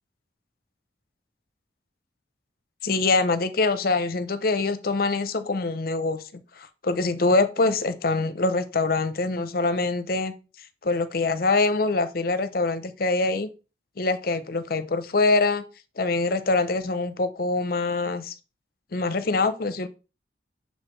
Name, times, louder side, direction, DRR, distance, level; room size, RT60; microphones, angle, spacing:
voice 1, 2.8-10.3 10.8-13.5 14.0-15.6 16.0-18.3 18.9-19.9, left 3 dB, 55° left, 0.7 m, -24 dB
6.7 x 4.8 x 3.1 m
head